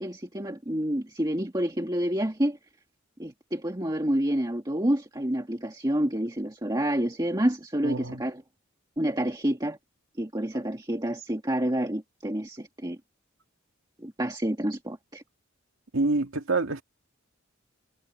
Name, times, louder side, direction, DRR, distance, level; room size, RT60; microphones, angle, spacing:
voice 1, 0.0-2.6 3.2-8.4 9.0-9.8 10.2-13.0 14.0-15.2, right 1 dB, 20° right, 1.8 m, -28 dB
voice 2, 7.8-8.2 15.9-16.8, right 3 dB, 80° right, 2.1 m, -27 dB
head